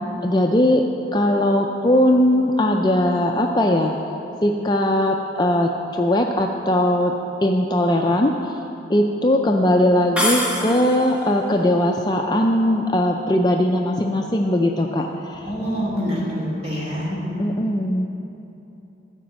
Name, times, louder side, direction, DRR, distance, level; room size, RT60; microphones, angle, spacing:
voice 1, 0.2-0.8 1.1-3.9 4.4-7.1 7.4-8.6 8.9-15.5 17.4-18.2, left 1 dB, 20° left, 2 dB, 0.4 m, -19 dB
sound 1, 10.2-11.2, left 1 dB, 5° right, 0.9 m, -24 dB
voice 2, 15.4-17.4, equal, 30° right, -6 dB, 2.8 m, -26 dB
13.5 x 5.1 x 7.3 m, 2.9 s
head